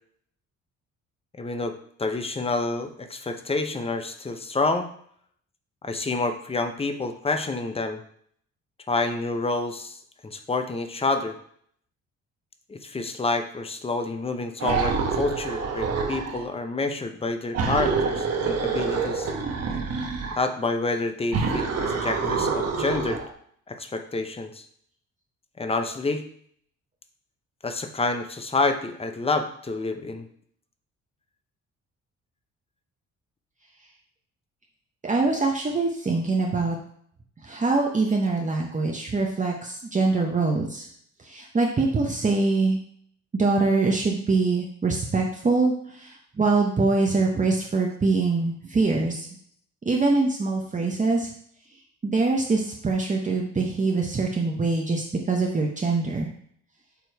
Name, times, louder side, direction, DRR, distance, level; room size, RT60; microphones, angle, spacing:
voice 1, 1.4-4.9 5.8-8.0 8.9-11.4 12.7-19.3 20.4-23.2 23.7-24.6 25.6-26.2 27.6-30.3, left 3 dB, 20° left, 7 dB, 0.7 m, -28 dB
sound 1, 14.6-16.4 17.5-20.4 21.3-23.3, right 5 dB, 55° right, 1.2 m, -26 dB
voice 2, 35.0-36.8 37.4-40.9 41.2-42.8 43.3-49.3 49.8-51.3 52.0-56.3, right 3 dB, 25° right, 0 dB, 0.9 m, -24 dB
7.0 x 3.0 x 4.6 m, 0.63 s
cardioid pair, 90°, 30 cm